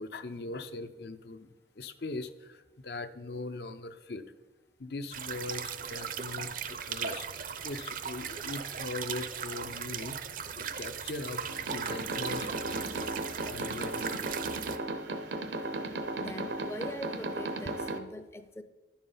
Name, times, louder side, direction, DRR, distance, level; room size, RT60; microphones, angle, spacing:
voice 1, 0.0-4.2 4.8-10.2 10.5-13.1 13.5-14.4, left 2 dB, 65° left, 9 dB, 0.7 m, -41 dB
sound 1, 5.1-14.8, right 7 dB, 50° right, 0.6 m, -38 dB
sound 2, 11.5-18.0, right 2 dB, 80° right, 0.9 m, -36 dB
voice 2, 16.2-18.6, left 1 dB, 15° left, 10 dB, 0.5 m, -42 dB
11.0 x 7.2 x 5.6 m, 1.2 s
head